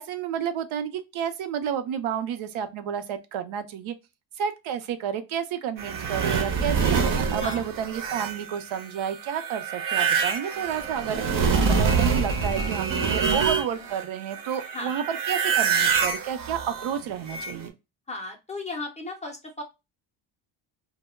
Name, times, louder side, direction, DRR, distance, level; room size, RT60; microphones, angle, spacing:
voice 1, 0.0-3.9 4.4-17.7, right 8 dB, 85° right, 0.6 m, -31 dB
sound 1, 5.8-14.0 14.3-17.7, right 6 dB, 50° right, 0.6 m, -26 dB
voice 2, 13.3-13.9 14.7-15.0 18.1-19.6, left 2 dB, 15° left, 0.4 m, -36 dB
2.1 x 2.1 x 3.3 m
wide cardioid pair, 165°, 46 cm